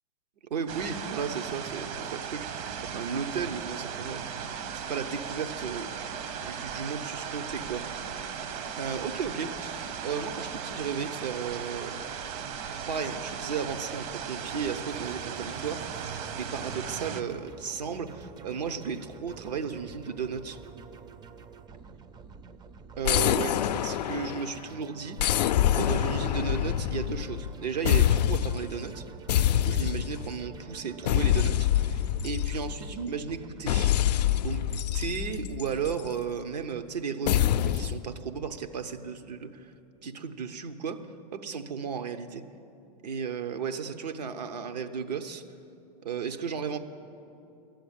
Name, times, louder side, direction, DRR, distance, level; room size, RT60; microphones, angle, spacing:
voice 1, 0.5-4.2 4.7-6.1 6.4-7.9 8.7-12.0 12.7-20.6 23.0-25.4 25.7-29.0 29.5-39.7 40.0-41.0 41.3-42.4 43.0-45.4 46.0-46.8, right 6 dB, 85° right, 8 dB, 0.9 m, -34 dB
sound 1, 0.7-17.2, right 7 dB, 55° right, 0.9 m, -37 dB
sound 2, 14.5-33.7, right 5 dB, 20° right, 0.4 m, -48 dB
sound 3, 23.0-24.6 25.2-27.5 27.9-28.7 29.3-30.3 31.1-32.9 33.7-36.1 37.3-38.0, left 11 dB, 80° left, 0.4 m, -26 dB
13.0 x 7.8 x 8.6 m, 2.8 s
hypercardioid pair, 110°, 21 cm